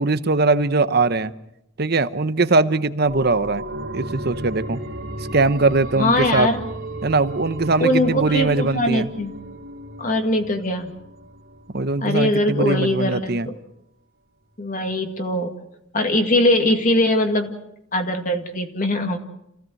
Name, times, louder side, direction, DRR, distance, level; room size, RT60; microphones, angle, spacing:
voice 1, 0.0-1.3 1.8-3.6 3.9-4.8 5.3-6.5 7.0-9.1 11.7-13.5, right 3 dB, 50° right, 13 dB, 0.9 m, -20 dB
sound 1, 3.1-12.4 12.8-12.9, right 1 dB, 85° right, 2.8 m, -35 dB
voice 2, 6.0-6.7 7.8-9.3 10.0-11.0 12.0-13.6 14.6-15.5 15.9-17.6 17.9-19.2, left 1 dB, 40° left, 5 dB, 2.1 m, -21 dB
28.5 x 16.5 x 7.8 m, 0.82 s
head